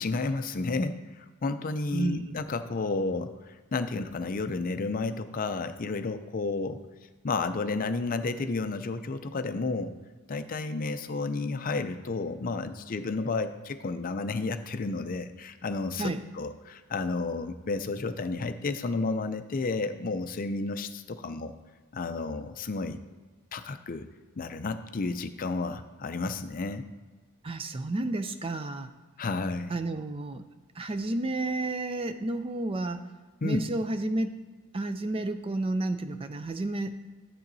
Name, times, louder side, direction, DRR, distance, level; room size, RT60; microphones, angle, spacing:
voice 1, 0.0-6.8 7.2-9.9 10.3-21.5 21.9-23.0 23.5-24.1 24.4-26.9 29.2-29.7 33.4-33.6, left 3 dB, 40° left, 9 dB, 0.4 m, -31 dB
voice 2, 1.9-2.4 16.0-16.2 27.4-28.9 29.7-30.4 30.8-33.0 33.4-34.4 34.7-37.0, right 2 dB, 25° right, 9 dB, 0.4 m, -31 dB
11.5 x 7.5 x 2.7 m, 1.4 s
head